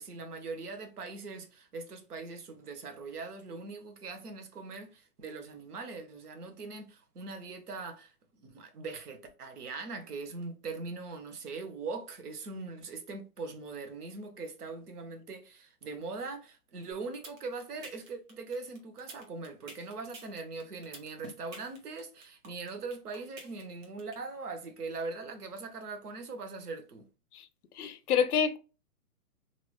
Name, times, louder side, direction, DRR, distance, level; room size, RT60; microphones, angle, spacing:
voice 1, 0.0-8.1 8.4-27.1, right 3 dB, 80° right, 1.0 m, -41 dB
sound 1, 16.9-24.1, right 2 dB, 55° right, 1.5 m, -48 dB
voice 2, 27.7-28.6, left 7 dB, 80° left, 0.6 m, -27 dB
3.1 x 2.8 x 2.2 m
hypercardioid pair, 165°, 45 cm